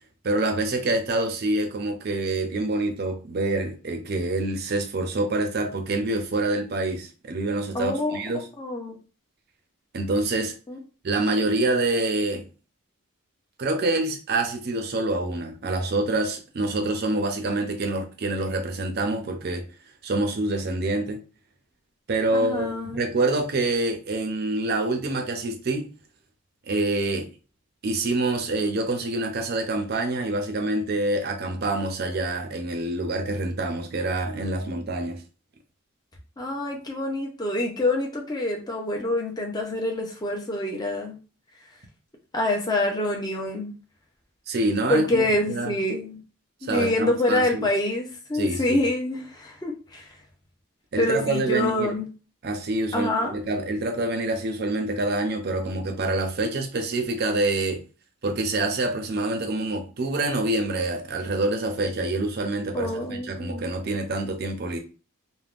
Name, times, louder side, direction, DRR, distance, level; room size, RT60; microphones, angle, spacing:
voice 1, 0.2-8.5 9.9-10.5 11.0-12.4 13.6-19.6 20.0-21.2 22.1-25.9 26.7-27.3 27.8-35.2 44.5-45.2 45.5-45.7 46.6-47.7 48.3-48.8 50.9-51.9 52.4-57.8 58.2-64.8, right 2 dB, 50° right, 0.5 m, -26 dB
voice 2, 7.7-8.2 8.6-9.0 10.7-10.8 22.3-23.0 36.4-41.2 42.3-43.7 44.9-46.2 46.6-50.1 51.0-52.1 52.9-53.3 62.7-63.7, left 1 dB, 20° left, 0.5 m, -26 dB
3.4 x 2.1 x 2.4 m
head